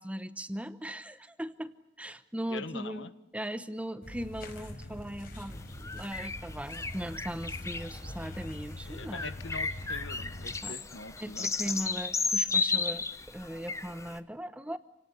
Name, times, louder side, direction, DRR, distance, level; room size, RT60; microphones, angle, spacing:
voice 1, 0.0-1.7 2.0-9.2 10.6-10.7 11.2-13.1 13.3-14.8, equal, 5° right, 13 dB, 0.9 m, -39 dB
voice 2, 2.5-3.1 8.9-12.0, left 3 dB, 85° left, 13 dB, 1.3 m, -43 dB
sound 1, 4.0-10.6, left 1 dB, 50° left, 4.8 m, -43 dB
sound 2, 5.6-14.2, left 4 dB, 15° left, 1.0 m, -34 dB
28.0 x 18.5 x 9.9 m, 0.84 s
head